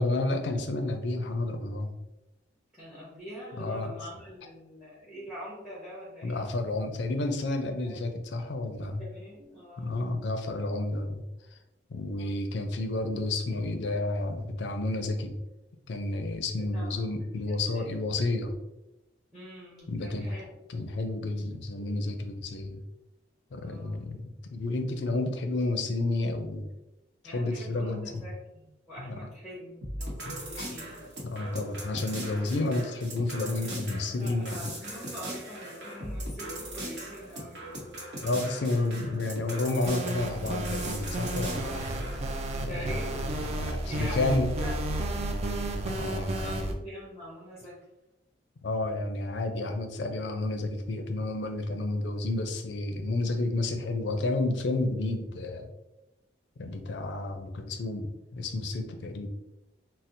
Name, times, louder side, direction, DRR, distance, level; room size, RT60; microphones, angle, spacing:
voice 1, 0.0-2.0 3.6-3.9 6.2-9.0 9.8-11.3 11.5-11.6 11.9-15.4 15.9-18.5 19.9-20.4 20.7-22.8 23.5-26.7 27.2-28.2 29.0-29.2 30.3-30.7 31.2-34.7 38.2-41.9 42.6-43.1 43.4-44.5 45.9-46.6 48.6-55.7 56.6-59.3, left 2 dB, 70° left, 6 dB, 0.4 m, -31 dB
voice 2, 2.7-6.4 7.8-8.1 9.0-9.9 12.0-12.3 16.6-17.0 17.5-18.0 19.3-20.4 23.6-24.1 27.2-31.1 34.2-37.7 41.5-41.9 42.7-44.7 46.3-47.8, equal, 5° right, -6 dB, 0.7 m, -44 dB
sound 1, 29.8-42.2, right 1 dB, 65° right, 1.0 m, -39 dB
sound 2, 39.9-46.7, right 1 dB, 35° right, 0.3 m, -32 dB
4.2 x 2.0 x 2.6 m, 0.96 s
head